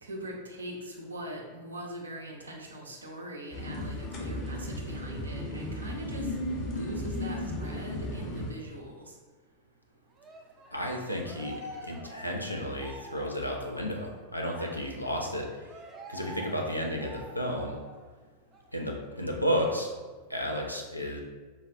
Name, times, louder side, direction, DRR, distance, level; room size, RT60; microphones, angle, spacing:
voice 1, 0.0-6.3 6.6-9.1, right 1 dB, 75° right, 1 dB, 0.5 m, -42 dB
sound 1, 3.5-8.5, left 1 dB, 35° left, 0.7 m, -35 dB
Cheering, 10.2-18.1 18.5-18.7 19.1-20.1, right 1 dB, 25° right, 0.4 m, -48 dB
voice 2, 10.7-15.7 16.1-17.8 18.7-19.9 20.3-21.2, equal, 90° left, 0 dB, 0.4 m, -32 dB
3.9 x 2.2 x 2.5 m, 1.3 s
figure-of-eight pair, 90°, 0 cm